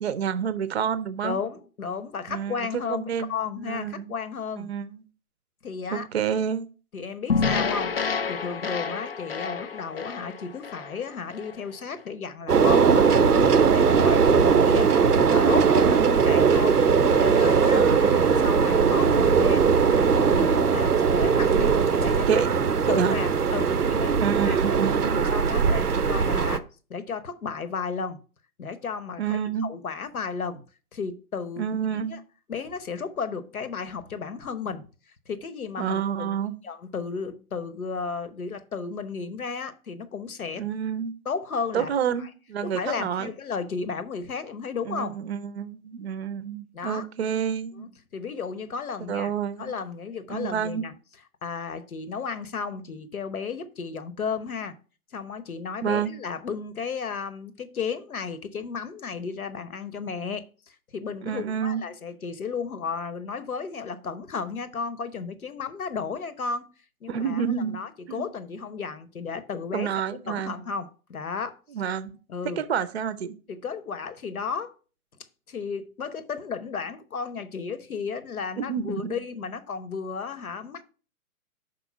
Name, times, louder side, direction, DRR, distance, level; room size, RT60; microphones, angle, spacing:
voice 1, 0.0-1.4 2.3-4.2 4.6-5.0 5.9-6.7 15.8-16.2 17.7-18.4 22.3-22.5 22.9-23.1 24.2-25.3 29.2-29.7 31.6-32.2 35.8-36.6 40.6-41.2 41.7-43.3 44.9-47.9 49.1-49.7 50.3-50.8 55.8-56.1 61.2-61.9 67.1-67.8 68.1-68.3 69.7-70.6 71.7-72.1 72.6-73.3 78.6-79.2, right 8 dB, 45° right, 0.6 m, -29 dB
voice 2, 1.2-4.7 5.6-6.1 6.9-16.8 17.2-19.7 20.1-22.4 22.9-24.8 25.1-28.2 28.6-30.6 30.9-31.7 31.9-32.2 32.5-34.9 35.3-36.4 36.6-40.6 41.2-41.9 42.2-42.3 42.6-45.2 46.7-47.1 47.8-49.3 49.6-50.9 51.4-54.8 55.1-66.7 67.0-69.9 70.3-71.6 72.3-72.6 73.5-74.7 75.5-80.8, left 5 dB, 70° left, 1.0 m, -33 dB
sound 1, 7.3-11.6, left 5 dB, 45° left, 0.4 m, -29 dB
sound 2, 12.5-26.6, right 6 dB, 90° right, 0.6 m, -20 dB
5.4 x 4.2 x 5.5 m
figure-of-eight pair, 130°, 45 cm